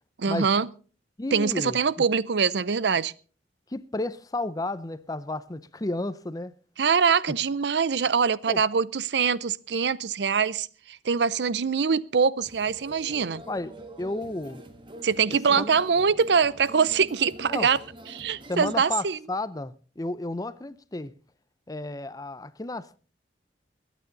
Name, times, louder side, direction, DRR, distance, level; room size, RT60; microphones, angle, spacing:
voice 1, 0.2-0.7 1.3-3.1 6.8-13.4 15.0-17.8 18.1-19.2, right 6 dB, 75° right, 0.6 m, -24 dB
voice 2, 1.2-1.8 3.7-6.5 8.5-8.6 13.5-13.7 14.0-14.6 14.9-15.7 17.5-17.7 18.5-21.1 21.7-23.0, left 2 dB, 20° left, 0.6 m, -32 dB
sound 1, 12.4-18.8, right 1 dB, 30° right, 1.4 m, -45 dB
22.0 x 9.2 x 4.0 m
head